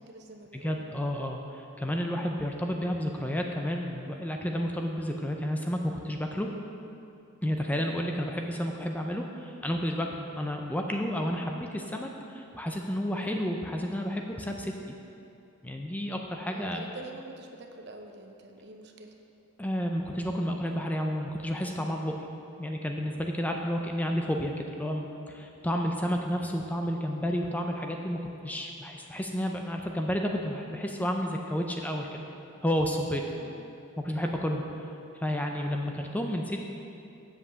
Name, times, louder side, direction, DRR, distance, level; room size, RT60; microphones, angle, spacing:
voice 1, 0.0-0.9 7.6-7.9 16.5-19.2 33.2-33.6, right 2 dB, 55° right, 4 dB, 0.7 m, -46 dB
voice 2, 0.5-6.5 7.4-14.7 15.6-16.8 19.6-22.1 22.6-32.2 32.6-33.2 34.0-34.6 35.1-36.7, equal, 5° left, 2 dB, 0.4 m, -31 dB
7.6 x 5.4 x 6.8 m, 2.7 s
head